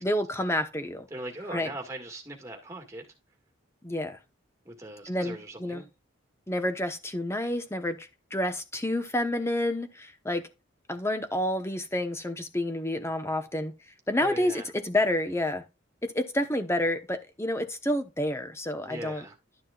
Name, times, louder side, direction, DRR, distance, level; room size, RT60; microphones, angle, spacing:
voice 1, 0.0-1.1 1.5-1.7 3.8-4.2 5.1-5.8 6.5-10.5 10.9-13.7 14.1-15.6 16.0-19.2, left 1 dB, 15° left, 1.0 m, -29 dB
voice 2, 1.1-3.0 4.7-5.9 14.2-14.7 18.9-19.3, right 1 dB, 15° right, 2.0 m, -40 dB
12.0 x 6.4 x 2.4 m
head